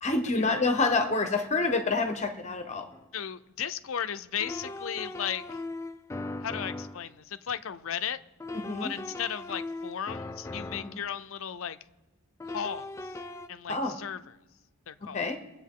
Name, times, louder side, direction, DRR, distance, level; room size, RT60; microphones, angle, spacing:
voice 1, 0.0-2.9 8.5-8.9 10.7-11.0 13.7-14.0 15.0-15.4, left 3 dB, 30° left, 6 dB, 0.8 m, -28 dB
sound 1, 2.9-3.0 4.4-7.1 8.4-11.1 12.4-13.5, left 2 dB, 15° left, 0.3 m, -39 dB
voice 2, 3.1-5.4 6.4-8.2 8.8-11.8 12.5-12.9 13.5-14.2 14.9-15.3, left 8 dB, 65° left, 11 dB, 0.5 m, -35 dB
24.0 x 8.1 x 3.7 m, 1.1 s
head